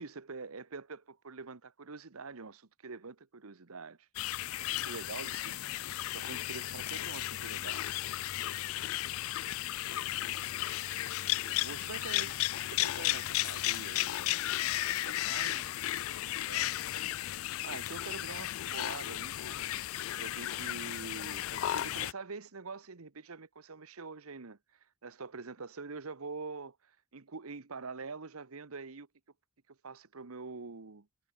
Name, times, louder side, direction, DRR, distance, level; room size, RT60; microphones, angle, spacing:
voice 1, 0.0-4.1 4.6-5.6 6.1-7.9 11.4-12.3 12.7-14.5 14.9-15.6 16.5-16.6 17.6-19.7 20.2-24.6 25.0-29.1 29.7-31.1, right 4 dB, 90° right, 1.1 m, -45 dB
sound 1, 4.1-22.1, left 14 dB, 75° left, 0.4 m, -34 dB
voice 2, 4.6-5.9 9.3-10.6 15.4-16.0 16.4-17.7 20.5-20.8, right 1 dB, 40° right, 5.9 m, -65 dB
head